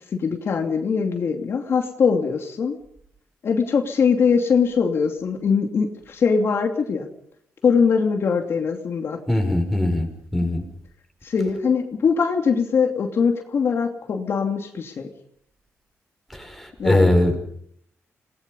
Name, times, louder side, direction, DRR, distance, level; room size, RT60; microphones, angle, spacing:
voice 1, 0.1-2.8 3.4-7.1 7.6-9.2 11.2-15.1 16.8-17.1, left 5 dB, 55° left, 4 dB, 2.6 m, -22 dB
voice 2, 9.3-10.6 16.3-17.5, left 1 dB, ahead, 2 dB, 6.1 m, -21 dB
28.5 x 19.5 x 5.5 m, 0.65 s
cardioid pair, 125°, 5 cm